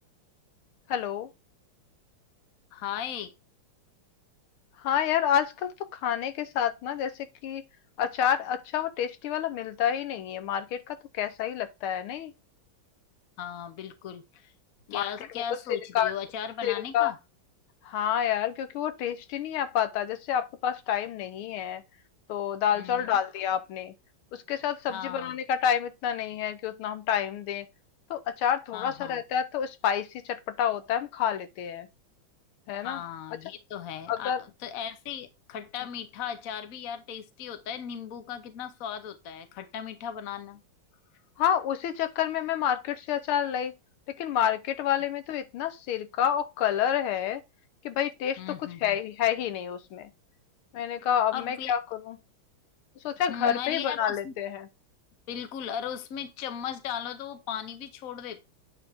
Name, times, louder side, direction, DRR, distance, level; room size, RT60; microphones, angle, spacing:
voice 1, 0.9-1.3 4.8-5.7 6.0-7.1 7.4-7.6 8.0-12.3 14.9-15.4 15.9-16.1 16.6-17.1 17.9-21.8 22.3-23.9 24.5-27.6 28.1-31.9 32.7-33.0 34.1-34.4 41.4-43.7 44.2-47.4 47.8-48.4 48.8-50.1 50.7-51.8 52.1-52.2 53.0-54.7, left 9 dB, 80° left, 1.7 m, -28 dB
voice 2, 2.7-3.3 13.4-14.5 14.9-17.2 22.7-23.2 24.9-25.4 28.7-29.2 32.8-40.6 48.4-49.0 51.3-51.7 53.3-54.3 55.3-58.5, left 9 dB, 50° left, 1.1 m, -37 dB
8.9 x 4.5 x 3.5 m
omnidirectional pair, 2.4 m